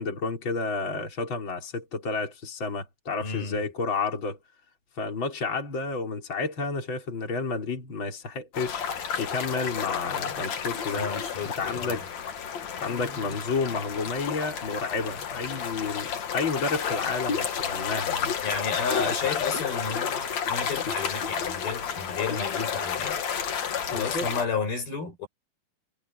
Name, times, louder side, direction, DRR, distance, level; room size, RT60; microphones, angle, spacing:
voice 1, 0.0-4.4 5.0-8.9 9.2-11.0 11.6-12.0 12.8-18.3 19.0-19.3 23.9-24.3, left 4 dB, 30° left, 5.7 m, -31 dB
voice 2, 3.2-3.6 11.0-12.1 18.4-23.2 23.9-25.3, left 5 dB, 80° left, 9.1 m, -32 dB
sound 1, 8.5-24.4, left 7 dB, 50° left, 3.0 m, -31 dB
omnidirectional pair, 4.3 m